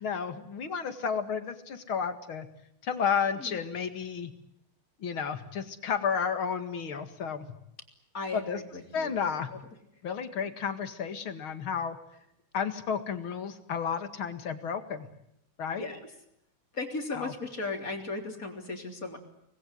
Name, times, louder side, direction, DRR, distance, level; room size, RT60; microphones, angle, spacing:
voice 1, 0.0-2.5 2.8-4.3 5.0-7.5 8.3-8.6 8.9-9.5 10.0-12.0 12.5-15.1 15.6-15.8 17.1-17.3, left 6 dB, 80° left, 10 dB, 2.9 m, -32 dB
voice 2, 8.1-9.1 15.8-16.0 16.7-19.2, left 3 dB, 40° left, 5 dB, 3.9 m, -36 dB
26.0 x 20.5 x 9.7 m, 0.79 s
omnidirectional pair, 2.2 m